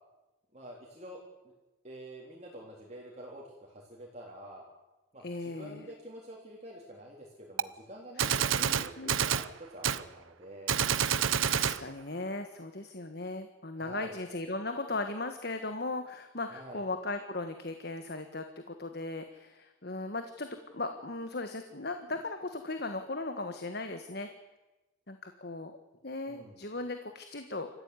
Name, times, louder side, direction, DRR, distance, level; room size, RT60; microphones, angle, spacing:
voice 1, 0.5-1.2 1.4-1.5 1.8-4.7 5.1-10.8 13.7-14.2 16.5-16.8 26.3-26.6, right 1 dB, 35° right, -2 dB, 3.9 m, -48 dB
voice 2, 5.2-5.9 8.2-8.3 8.6-9.2 11.4-24.3 25.1-25.7 26.0-27.7, left 2 dB, 50° left, 7 dB, 1.5 m, -37 dB
Gunshot gunfire, 7.6-7.7 8.2-9.5 9.8-10.0 10.7-11.8, right 8 dB, 80° right, 0.8 m, -28 dB
27.0 x 14.5 x 9.7 m, 1.0 s
head